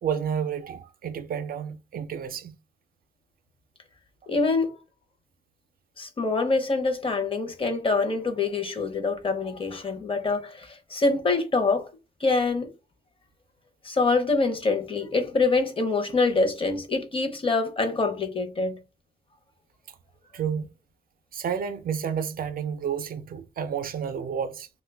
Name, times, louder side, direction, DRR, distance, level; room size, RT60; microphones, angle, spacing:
voice 1, 0.0-2.5 20.3-20.7 21.3-24.7, right 7 dB, 60° right, 0.4 m, -30 dB
voice 2, 4.3-4.8 6.0-11.9 12.2-12.7 13.8-18.8, left 3 dB, 35° left, 0.6 m, -25 dB
3.1 x 2.1 x 3.3 m
wide cardioid pair, 120°, 17 cm